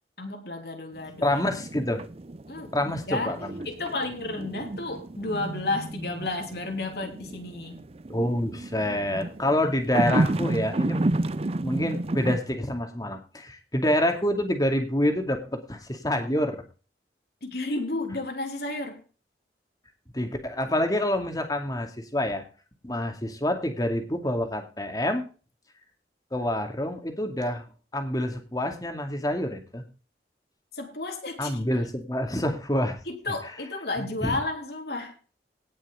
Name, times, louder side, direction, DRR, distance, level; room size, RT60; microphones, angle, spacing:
voice 1, 0.2-1.4 2.5-3.4 3.6-7.8 17.4-19.0 30.7-31.6 33.0-35.1, left 2 dB, 60° left, 3 dB, 3.2 m, -32 dB
sound 1, 1.0-12.4, right 2 dB, 35° right, 0.6 m, -31 dB
voice 2, 1.2-2.0 2.7-3.6 8.1-11.0 11.6-16.6 20.1-22.4 22.8-25.3 26.3-27.7 27.9-29.8 31.4-33.0 34.0-34.4, left 1 dB, 20° left, 5 dB, 2.4 m, -27 dB
18.0 x 6.3 x 3.9 m, 0.35 s
head